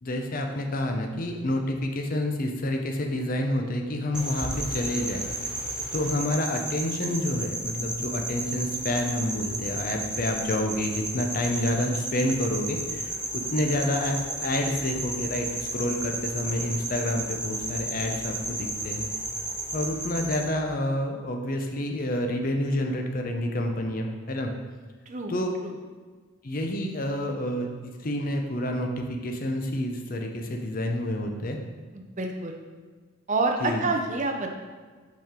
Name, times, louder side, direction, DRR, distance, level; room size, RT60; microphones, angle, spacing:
voice 1, 0.0-5.3 5.9-19.1 19.7-24.5 25.3-25.5 26.4-31.6 33.6-33.9, left 1 dB, 40° left, 3 dB, 0.6 m, -28 dB
sound 1, 4.1-20.5, right 1 dB, 5° right, 0.9 m, -33 dB
voice 2, 25.1-25.4 25.6-25.7 31.9-32.6 33.3-34.5, right 3 dB, 35° right, 4 dB, 0.6 m, -28 dB
5.3 x 5.1 x 3.7 m, 1.4 s
head